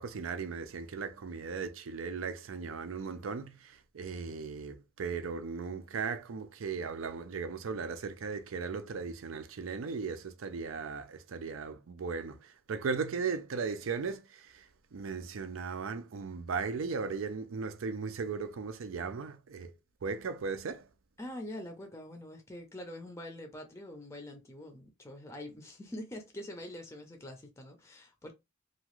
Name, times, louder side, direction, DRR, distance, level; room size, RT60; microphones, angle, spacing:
voice 1, 0.0-19.7 20.0-20.9, right 5 dB, 80° right, 0.5 m, -37 dB
voice 2, 21.2-28.3, left 1 dB, 15° left, 0.5 m, -44 dB
2.8 x 2.4 x 3.0 m
head